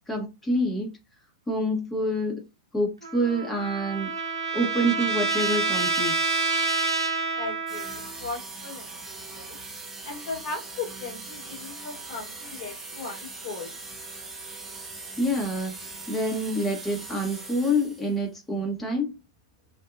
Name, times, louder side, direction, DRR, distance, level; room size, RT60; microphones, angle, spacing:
voice 1, 0.1-0.9 1.5-2.4 2.7-4.1 4.5-6.3 15.2-19.1, equal, 10° left, 1.1 m, -27 dB
Trumpet, 3.0-8.2, right 4 dB, 80° right, 0.6 m, -27 dB
voice 2, 7.3-9.6 10.0-13.7, left 4 dB, 55° left, 1.3 m, -37 dB
sound 1, 7.7-18.2, right 3 dB, 15° right, 0.9 m, -41 dB
2.7 x 2.6 x 2.5 m
figure-of-eight pair, 100°, 3 cm